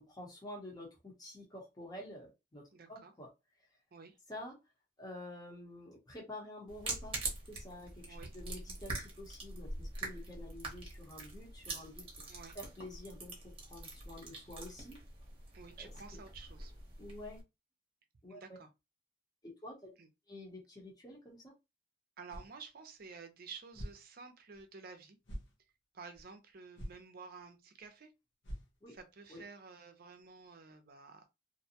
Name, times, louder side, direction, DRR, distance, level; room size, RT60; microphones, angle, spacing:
voice 1, 0.0-2.6 2.9-3.3 4.3-4.5 5.0-13.3 13.6-15.0 15.8-15.9 17.0-17.4 18.2-18.4 19.6-19.9 20.3-21.5 28.8-28.9 29.3-29.4, left 1 dB, 20° left, 0.8 m, -49 dB
voice 2, 2.7-3.1 3.9-4.2 8.1-8.3 12.3-12.6 15.5-16.7 18.3-18.7 20.0-20.1 22.2-25.2 25.9-28.1 28.9-31.2, right 5 dB, 55° right, 0.5 m, -51 dB
sound 1, 6.7-17.4, right 2 dB, 30° right, 0.9 m, -44 dB
sound 2, 22.3-22.6 23.0-23.1 23.7-24.0 24.6-24.7 25.2-25.5 26.1-26.2 26.8-27.0 27.4-27.5 27.8-27.9 28.4-29.0, equal, 80° left, 0.8 m, -45 dB
2.6 x 2.1 x 2.8 m
head